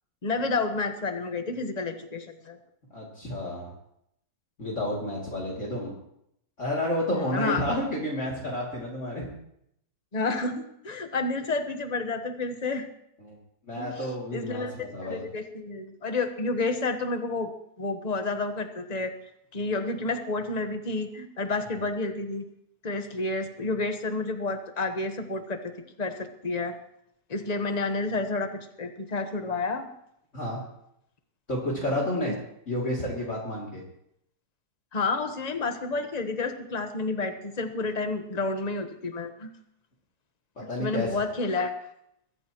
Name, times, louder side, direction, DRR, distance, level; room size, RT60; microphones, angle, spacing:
voice 1, 0.2-2.6 7.1-7.6 10.1-12.9 13.8-14.7 15.0-17.5 17.8-19.1 19.5-22.4 22.8-25.7 26.0-26.7 27.3-29.9 32.2-32.3 34.9-39.5 40.6-41.7, left 3 dB, 25° left, 7 dB, 1.2 m, -30 dB
voice 2, 2.9-3.7 4.6-5.9 6.6-9.3 13.2-13.4 13.7-15.2 21.7-21.8 30.3-30.6 31.5-32.4 32.7-33.8 40.6-41.1, left 1 dB, 45° left, -4 dB, 3.1 m, -30 dB
22.0 x 14.0 x 3.0 m, 0.76 s
omnidirectional pair, 1.8 m